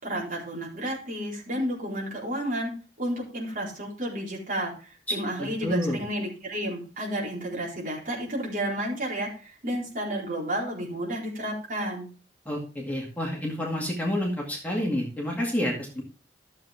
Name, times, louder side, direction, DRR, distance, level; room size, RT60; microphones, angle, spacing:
voice 1, 0.0-2.7 3.0-12.1, right 1 dB, 45° right, -3 dB, 4.3 m, -31 dB
voice 2, 5.4-6.0 12.5-16.0, left 1 dB, 10° left, -2 dB, 2.2 m, -29 dB
12.5 x 7.4 x 3.5 m, 0.37 s
head